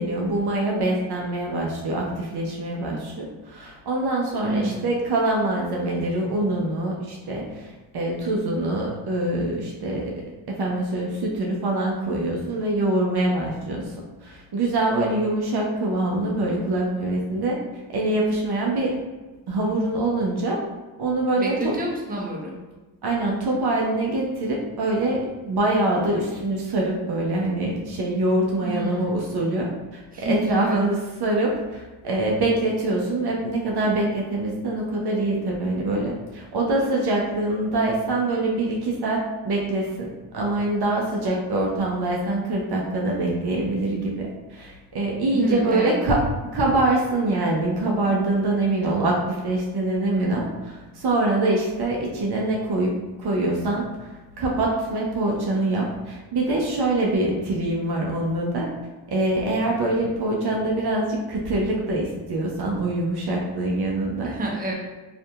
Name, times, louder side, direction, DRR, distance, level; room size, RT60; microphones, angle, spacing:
voice 1, 0.0-10.1 10.5-13.9 14.2-17.6 17.9-19.0 19.5-20.6 21.0-21.7 23.0-46.2 46.5-58.7 59.1-64.3, right 2 dB, 50° right, -2 dB, 0.7 m, -24 dB
voice 2, 4.4-4.8 21.4-22.5 28.6-29.1 30.1-30.8 45.3-46.0 64.2-64.7, right 1 dB, 15° right, -1 dB, 0.7 m, -28 dB
2.6 x 2.5 x 2.3 m, 1.2 s
supercardioid pair, 45°, 50 cm